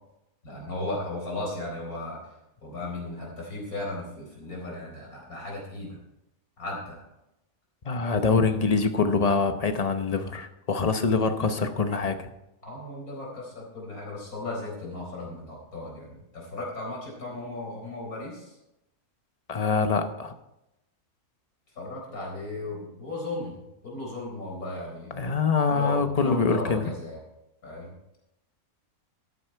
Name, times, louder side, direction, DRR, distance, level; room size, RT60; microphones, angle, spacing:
voice 1, 0.4-2.2 2.6-6.0 6.6-7.0 12.6-16.1 16.3-18.5 21.8-25.1 25.7-27.2 27.6-27.9, left 2 dB, 80° left, -2 dB, 4.6 m, -36 dB
voice 2, 7.8-12.3 19.5-20.3 25.1-26.9, left 4 dB, 35° left, 8 dB, 0.8 m, -24 dB
13.5 x 8.4 x 4.5 m, 0.89 s
omnidirectional pair, 1.5 m